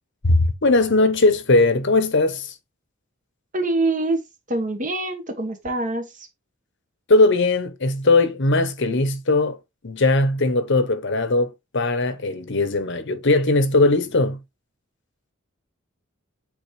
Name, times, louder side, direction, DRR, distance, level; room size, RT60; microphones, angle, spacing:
voice 1, 0.2-2.5 7.1-9.6 9.8-14.4, left 2 dB, 60° left, 1.0 m, -19 dB
voice 2, 3.5-4.2 4.5-6.1, right 2 dB, 40° right, 1.4 m, -24 dB
8.3 x 3.6 x 3.2 m
head